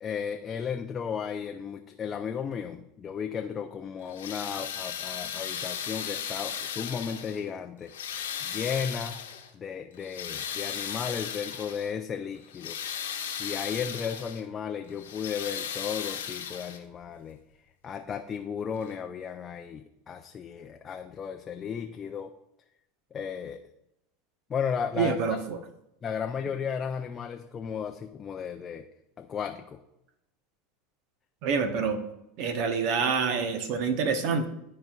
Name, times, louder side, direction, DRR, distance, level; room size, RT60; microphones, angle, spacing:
voice 1, 0.0-7.9 8.4-9.2 9.5-12.8 13.4-17.4 17.8-22.3 23.1-23.6 24.5-25.4 26.0-28.9 29.2-29.8, left 7 dB, 30° left, 5 dB, 0.5 m, -34 dB
sound 1, 4.0-7.5 7.9-9.5 9.9-11.9 12.4-14.4 14.9-17.0 18.1-18.2 18.8-18.9, left 8 dB, 90° left, 1.1 m, -36 dB
voice 2, 25.0-25.6 31.4-32.0 32.4-34.5, right 5 dB, 60° right, 7 dB, 1.0 m, -27 dB
12.5 x 4.3 x 2.4 m, 0.85 s
hypercardioid pair, 100°, 0 cm